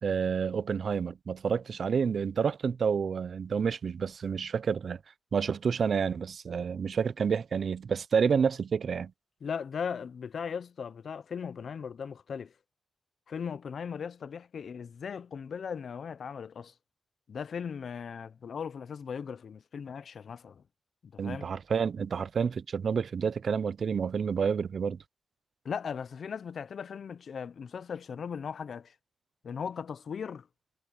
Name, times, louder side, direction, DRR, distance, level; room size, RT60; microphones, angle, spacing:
voice 1, 0.0-5.0 5.3-9.1 21.2-25.0, right 6 dB, 60° right, 0.5 m, -29 dB
voice 2, 9.4-12.5 13.3-16.7 17.3-20.6 21.0-21.5 25.6-28.9 29.4-30.5, left 6 dB, 65° left, 0.7 m, -38 dB
cardioid pair, 95°, 0 cm